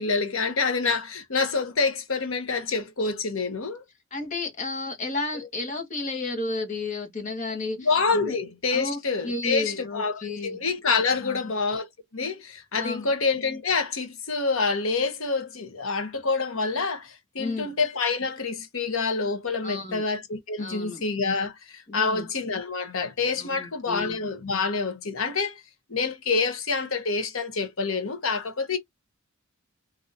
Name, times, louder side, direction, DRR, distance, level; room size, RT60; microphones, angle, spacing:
voice 1, 0.0-3.8 7.8-25.6 25.9-28.8, left 4 dB, 70° left, 1.0 m, -27 dB
voice 2, 4.1-8.3 8.7-10.6 11.2-11.5 12.7-13.1 17.4-17.8 19.6-20.0 20.6-21.0 21.9-22.2 23.4-24.2, left 3 dB, 35° left, 1.4 m, -32 dB
3.8 x 2.8 x 2.7 m
head